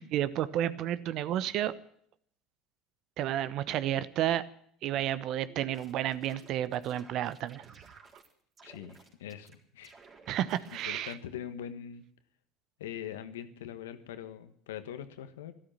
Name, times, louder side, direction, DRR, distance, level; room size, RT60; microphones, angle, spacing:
voice 1, 0.0-1.7 3.2-4.4 4.8-7.6 10.3-11.1, right 12 dB, 60° right, 16 dB, 1.0 m, -31 dB
sound 1, 5.5-8.3 8.6-9.5 9.8-11.2, right 4 dB, 40° right, 3.8 m, -56 dB
voice 2, 8.6-10.0 10.8-12.1 12.8-15.5, left 9 dB, 80° left, 11 dB, 1.3 m, -42 dB
13.0 x 12.5 x 8.8 m, 0.65 s
hypercardioid pair, 75°, 0 cm